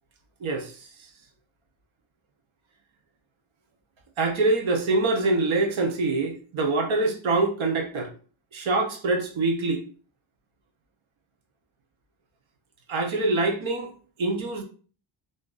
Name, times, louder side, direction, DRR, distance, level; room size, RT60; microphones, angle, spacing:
voice 1, 0.4-0.7 4.2-8.1 8.5-9.8 12.9-13.9 14.2-14.6, right 2 dB, 80° right, 0.8 m, -24 dB
2.6 x 2.4 x 3.7 m
wide cardioid pair, 140°, 47 cm